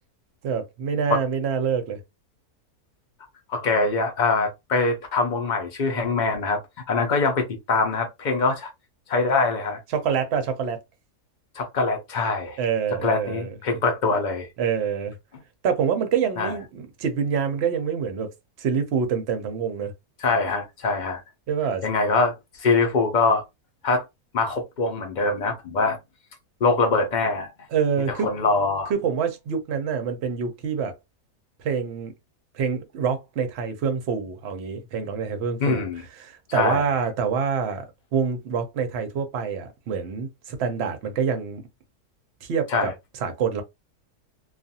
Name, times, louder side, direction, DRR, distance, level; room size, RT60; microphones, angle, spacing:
voice 1, 0.4-2.0 9.9-10.8 12.6-13.5 14.6-15.1 15.6-18.3 18.6-19.9 21.5-21.8 27.7-28.3 28.9-30.9 31.6-32.1 32.5-35.8 36.1-37.8 38.1-41.6 42.4-42.9 43.2-43.6, right 6 dB, 60° right, 0.7 m, -26 dB
voice 2, 3.5-6.6 6.9-8.7 9.1-9.8 11.6-12.6 13.0-14.5 16.4-16.5 20.2-21.2 21.8-22.3 22.6-23.4 23.8-24.0 24.3-26.0 26.6-27.5 28.1-28.9 35.6-36.0 36.5-36.8 42.7-42.9, left 3 dB, 85° left, 0.4 m, -23 dB
2.4 x 2.4 x 2.6 m
omnidirectional pair, 1.6 m